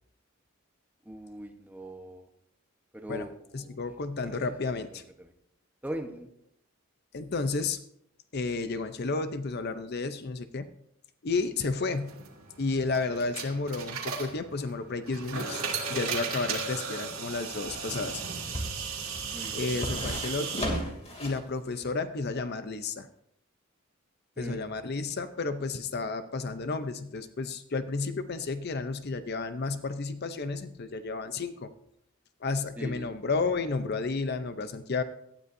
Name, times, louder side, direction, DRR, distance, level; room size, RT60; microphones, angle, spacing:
voice 1, 1.1-2.3 2.9-3.8 4.2-4.4 5.2-5.3 5.8-6.3 19.3-19.6 24.4-24.6 32.8-33.1, right 1 dB, 10° right, 4 dB, 1.0 m, -40 dB
voice 2, 3.5-5.0 7.1-7.8 8.3-10.7 11.2-12.2 12.6-15.6 15.9-18.2 19.5-20.7 21.2-23.1 24.4-31.7 32.4-35.0, left 3 dB, 50° left, 11 dB, 0.6 m, -32 dB
sound 1, 11.9-20.7, right 5 dB, 85° right, 2.3 m, -36 dB
sound 2, 16.7-21.5 21.8-21.9, equal, 30° left, 2.6 m, -37 dB
18.0 x 12.0 x 2.6 m, 0.75 s
head